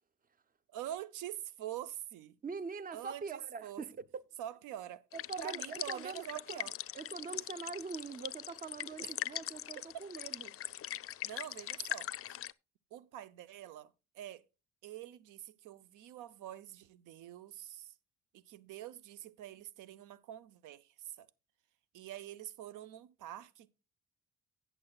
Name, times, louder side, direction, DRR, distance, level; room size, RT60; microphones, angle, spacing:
voice 1, 0.7-2.4 2.9-3.8 4.4-5.0 5.4-6.7 9.0-9.1 11.2-12.1 12.9-13.9 14.1-14.4 14.8-17.9 18.3-21.3 21.9-23.7, right 12 dB, 85° right, 0.6 m, -45 dB
voice 2, 2.4-4.2 5.1-6.7 6.9-10.5, right 5 dB, 30° right, 0.6 m, -43 dB
sound 1, 5.1-12.5, left 12 dB, 50° left, 0.4 m, -42 dB
17.0 x 6.8 x 2.3 m
cardioid pair, 90°, 30 cm